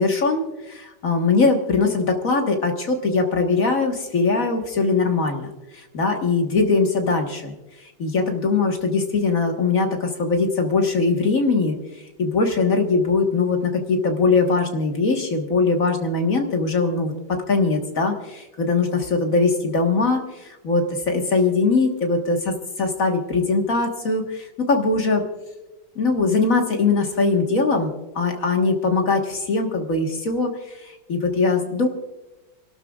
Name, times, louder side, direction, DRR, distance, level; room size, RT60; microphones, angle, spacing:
voice 1, 0.0-5.5 5.7-7.5 8.0-11.8 12.2-17.1 17.5-25.2 26.0-31.9, left 3 dB, 50° left, 3 dB, 1.8 m, -21 dB
29.5 x 12.5 x 2.4 m, 1.0 s
omnidirectional pair, 1.9 m